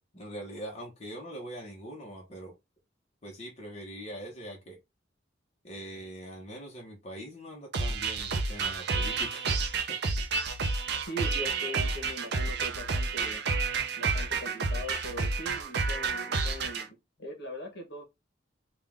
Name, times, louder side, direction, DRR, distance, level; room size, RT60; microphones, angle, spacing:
voice 1, 0.0-2.6 3.2-4.8 5.6-9.6 9.9-10.0, equal, 35° left, 1.1 m, -42 dB
sound 1, 7.7-16.8, right 4 dB, 60° right, 0.6 m, -30 dB
voice 2, 11.0-13.4 14.0-18.0, equal, 60° left, 1.2 m, -41 dB
3.7 x 2.4 x 3.5 m
head